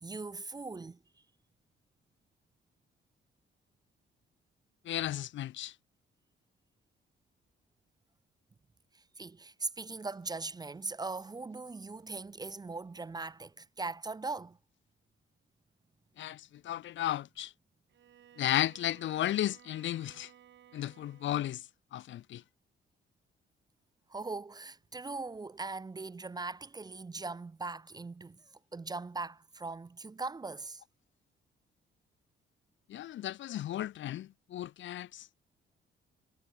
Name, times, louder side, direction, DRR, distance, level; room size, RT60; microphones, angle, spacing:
voice 1, 0.0-1.0 9.2-14.6 24.1-28.4 28.7-30.8, right 3 dB, 20° right, 0.6 m, -40 dB
voice 2, 4.8-5.7 16.2-17.5 18.4-20.3 20.7-21.6 21.9-22.4 32.9-35.3, left 13 dB, 70° left, 1.1 m, -34 dB
Bowed string instrument, 17.9-21.6, right 10 dB, 65° right, 3.4 m, -59 dB
cardioid pair, 90°, 20 cm